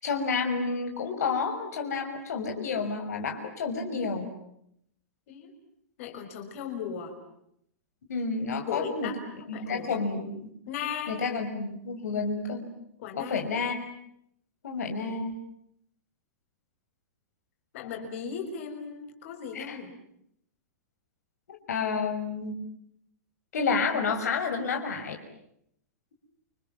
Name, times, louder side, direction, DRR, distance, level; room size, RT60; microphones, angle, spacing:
voice 1, 0.0-4.3 8.1-9.1 9.5-10.5 11.1-12.7 13.2-13.9 14.6-15.3 19.5-19.8 21.5-22.6 23.5-25.2, left 4 dB, 85° left, 4 dB, 6.2 m, -30 dB
voice 2, 6.0-7.2 8.7-10.0 10.7-11.2 13.0-13.4 17.7-19.9, left 7 dB, 55° left, 5 dB, 6.0 m, -37 dB
29.5 x 26.5 x 7.4 m, 0.73 s
hypercardioid pair, 145°, 9 cm